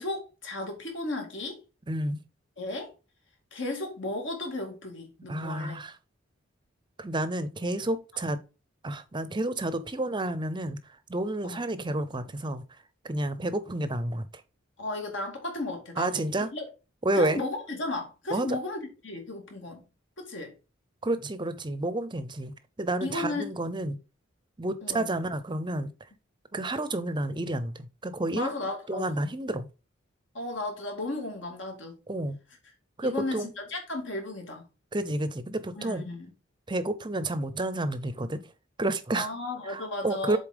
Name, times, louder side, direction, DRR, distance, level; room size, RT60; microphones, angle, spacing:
voice 1, 0.0-1.6 2.6-2.9 3.5-5.8 11.4-11.6 14.8-16.6 17.2-19.8 20.2-20.5 23.0-23.5 24.8-25.1 28.3-29.1 30.3-32.0 33.0-34.7 35.8-36.3 39.1-40.4, left 2 dB, 65° left, 2.5 m, -34 dB
voice 2, 1.9-2.2 5.3-6.0 7.0-8.4 8.8-10.8 11.1-12.6 13.0-14.3 16.0-16.5 17.0-17.4 18.3-18.6 21.0-24.0 24.6-25.9 26.5-28.5 28.9-29.7 32.1-32.4 33.0-33.5 34.9-36.0 36.7-38.4 38.8-39.3 39.6-40.4, right 1 dB, 25° right, 0.7 m, -30 dB
7.2 x 4.2 x 5.1 m
head